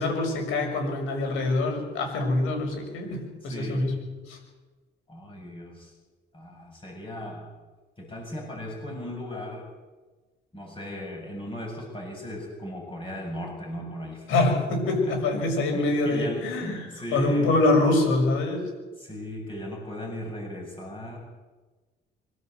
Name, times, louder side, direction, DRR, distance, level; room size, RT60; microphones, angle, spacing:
voice 1, 0.0-3.9 4.3-4.4 14.3-18.7, left 2 dB, 90° left, 3 dB, 6.4 m, -25 dB
voice 2, 3.4-3.8 5.1-5.9 6.3-7.5 8.0-9.7 10.5-14.3 15.1-15.2 15.7-17.5 19.0-21.2, left 1 dB, 25° left, -1 dB, 7.4 m, -37 dB
25.5 x 13.5 x 8.0 m, 1.3 s
cardioid pair, 90°, 20 cm